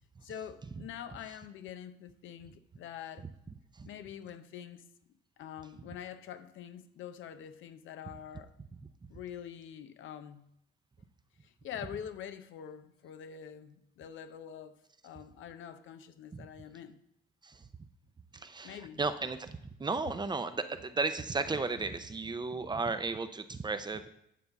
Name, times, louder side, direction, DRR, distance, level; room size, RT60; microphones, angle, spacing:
voice 1, 0.2-3.3 3.8-4.8 5.4-8.5 9.1-10.5 11.4-14.8 15.0-17.0 18.6-19.0, left 9 dB, 80° left, 0.7 m, -45 dB
voice 2, 18.3-24.1, right 3 dB, 20° right, 0.6 m, -34 dB
9.3 x 3.9 x 6.9 m
cardioid pair, 90°, 20 cm